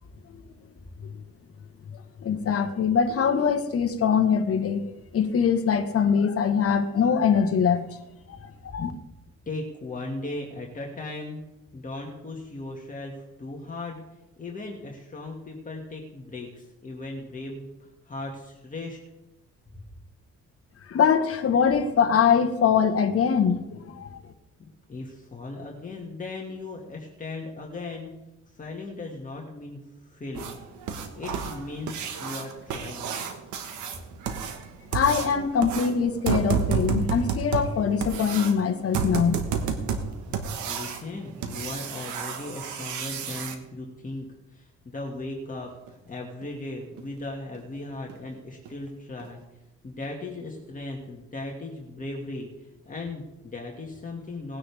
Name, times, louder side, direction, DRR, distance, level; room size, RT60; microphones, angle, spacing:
voice 1, 2.2-4.8 5.1-7.9 8.4-8.9 20.9-24.2 34.9-39.4, left 7 dB, 50° left, 1.4 m, -23 dB
voice 2, 9.5-11.4 11.7-14.0 14.4-19.0 19.7-19.8 24.6-28.1 28.5-30.6 30.9-33.1 40.3-44.3 44.5-49.4 49.8-54.6, left 2 dB, 25° left, 2.1 m, -37 dB
sound 1, 30.3-43.5 45.9-46.0 46.4-46.5 47.0-47.1 47.5-47.6 48.1-48.3 48.6-48.7 49.2-49.3, right 6 dB, 90° right, 1.5 m, -31 dB
19.5 x 9.8 x 3.5 m
cardioid pair, 100°, 29 cm